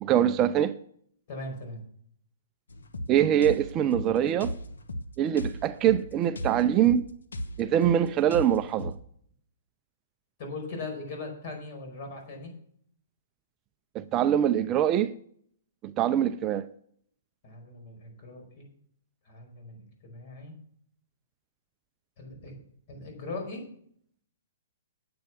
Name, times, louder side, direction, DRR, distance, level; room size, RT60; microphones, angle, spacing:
voice 1, 0.0-0.7 3.1-4.5 5.2-7.0 7.6-8.9 13.9-15.1 15.8-16.7, right 10 dB, 25° right, 0.5 m, -24 dB
voice 2, 1.3-1.8 10.4-12.5 17.4-18.7 19.3-20.5 22.2-22.5 22.9-23.6, left 3 dB, 50° left, 5.1 m, -39 dB
sound 1, 2.7-9.0, left 1 dB, 85° left, 1.1 m, -37 dB
9.4 x 7.8 x 7.0 m
hypercardioid pair, 135°, 0 cm